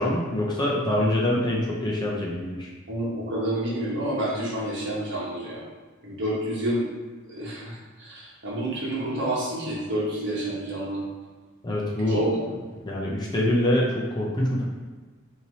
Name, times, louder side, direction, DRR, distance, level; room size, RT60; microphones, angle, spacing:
voice 1, 0.0-2.7 11.6-12.2 12.8-14.6, left 1 dB, 20° left, -4 dB, 0.5 m, -25 dB
voice 2, 2.9-5.6 6.0-6.8 7.3-11.0 12.1-12.3, right 1 dB, 55° right, -5 dB, 1.1 m, -29 dB
3.2 x 2.8 x 4.0 m, 1.3 s
head